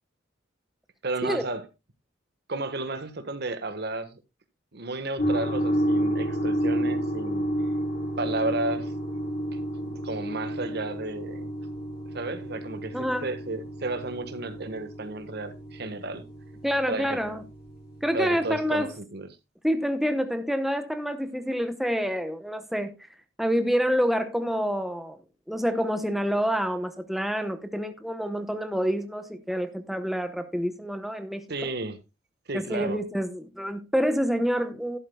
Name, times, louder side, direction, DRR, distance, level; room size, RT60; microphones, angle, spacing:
voice 1, 1.0-1.6 2.5-4.2 4.7-7.4 8.2-8.9 9.5-11.5 12.1-16.2 16.9-17.2 18.1-19.3 31.5-32.0 32.5-33.0, right 2 dB, 60° right, 1.4 m, -33 dB
sound 1, 5.2-18.8, right 1 dB, 55° left, 7.3 m, -31 dB
voice 2, 12.9-13.3 16.6-17.4 18.0-18.9 19.6-23.0 23.4-25.2 25.5-31.7 32.5-35.0, equal, ahead, 0.8 m, -27 dB
12.0 x 11.5 x 2.2 m
head